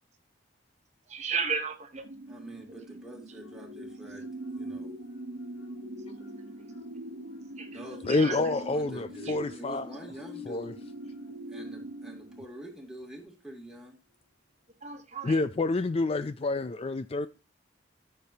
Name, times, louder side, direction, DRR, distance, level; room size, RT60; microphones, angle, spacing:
voice 1, 1.1-2.1 7.6-7.8 8.1-8.4 9.3-9.4 14.8-15.4, right 5 dB, 35° right, 0.9 m, -33 dB
sound 1, 2.0-12.4, right 2 dB, 70° right, 0.9 m, -44 dB
voice 2, 2.3-4.9 7.7-10.8 11.5-14.0, right 1 dB, 5° right, 2.6 m, -46 dB
sound 2, 3.3-13.2 13.6-13.8, left 4 dB, 80° left, 3.1 m, -48 dB
voice 3, 8.1-9.9 10.5-10.7 15.2-17.3, left 3 dB, 30° left, 0.4 m, -28 dB
13.5 x 6.7 x 2.8 m
head